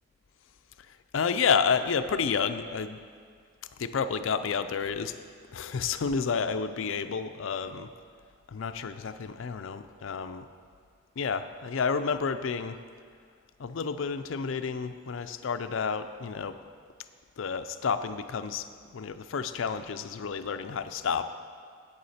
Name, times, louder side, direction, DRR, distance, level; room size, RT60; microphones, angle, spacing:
voice 1, 1.1-3.0 3.8-5.1 5.5-7.9 8.5-10.5 11.2-12.8 13.6-16.6 17.4-21.2, left 6 dB, 70° left, 9 dB, 0.4 m, -30 dB
9.6 x 8.6 x 4.2 m, 2.1 s
head